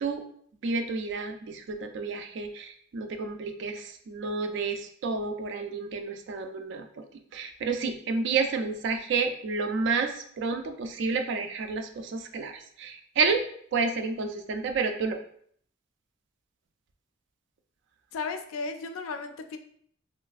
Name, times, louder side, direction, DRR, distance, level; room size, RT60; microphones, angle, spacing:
voice 1, 0.6-7.0 7.3-13.4 13.7-15.2, right 4 dB, 60° right, 6 dB, 0.3 m, -30 dB
voice 2, 18.1-19.6, left 4 dB, 80° left, 8 dB, 0.3 m, -34 dB
3.1 x 2.4 x 2.4 m, 0.63 s
head